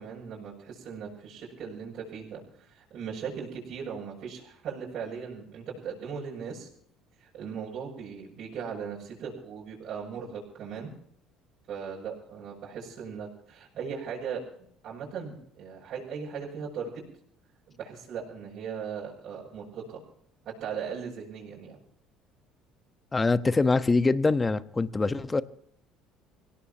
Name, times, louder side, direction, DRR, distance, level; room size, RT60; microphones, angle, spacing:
voice 1, 0.0-6.7 7.2-10.9 11.7-14.4 14.8-17.0 17.7-20.0 20.4-21.8, right 6 dB, 55° right, -5 dB, 7.0 m, -38 dB
voice 2, 23.1-25.4, left 3 dB, 25° left, 12 dB, 1.2 m, -24 dB
26.0 x 17.5 x 3.1 m, 0.65 s
hypercardioid pair, 65°, 0 cm